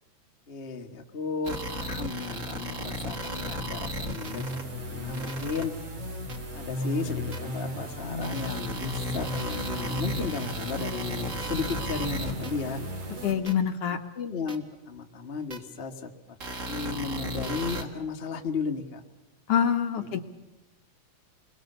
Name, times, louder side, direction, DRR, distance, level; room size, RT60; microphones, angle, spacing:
voice 1, 0.5-5.7 6.5-12.8 14.1-16.1 16.7-19.0 20.0-20.2, left 5 dB, 30° left, 3 dB, 1.1 m, -34 dB
sound 1, 1.4-4.6 5.1-5.6 6.3-6.4 7.3-7.4 8.2-12.5 13.5-13.6 14.5-14.6 15.5-15.6 16.4-17.8, equal, 30° right, 1.9 m, -35 dB
sound 2, 3.9-13.3, equal, 55° right, 4.8 m, -36 dB
voice 2, 13.2-14.0 19.5-20.2, left 8 dB, 65° left, 6 dB, 1.9 m, -25 dB
29.0 x 22.0 x 6.8 m, 1.0 s
omnidirectional pair, 3.3 m